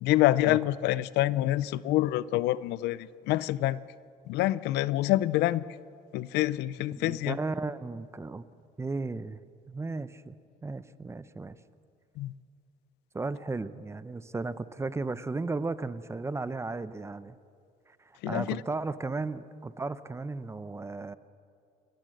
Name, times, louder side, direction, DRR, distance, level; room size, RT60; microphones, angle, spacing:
voice 1, 0.0-3.8 4.3-5.6 6.1-7.4 12.2-12.3 18.2-18.6, left 15 dB, 85° left, 19 dB, 0.5 m, -26 dB
voice 2, 7.0-8.5 8.8-9.4 9.7-10.4 10.6-11.6 13.1-17.4 17.9-18.0 18.3-21.2, right 3 dB, 15° right, 15 dB, 0.7 m, -35 dB
28.5 x 12.0 x 7.7 m, 2.4 s
cardioid pair, 110°, 17 cm